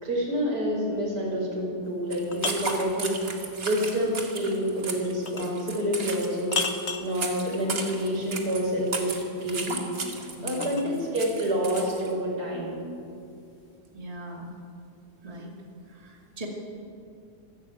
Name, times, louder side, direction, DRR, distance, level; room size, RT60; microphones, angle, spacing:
voice 1, 0.0-3.2 3.6-6.6 7.0-9.8 10.4-12.8, equal, 85° right, -2 dB, 6.1 m, -28 dB
sound 1, 1.9-2.9 5.3-5.6 6.5-7.1 9.4-10.9, left 5 dB, 45° left, 1.5 m, -33 dB
sound 2, 2.1-12.1, right 3 dB, 60° right, 2.6 m, -35 dB
voice 2, 10.3-10.8 13.9-14.5 15.2-15.5 15.9-16.5, right 1 dB, 20° right, -1 dB, 2.6 m, -40 dB
26.0 x 12.5 x 8.9 m, 2.5 s
omnidirectional pair, 1.7 m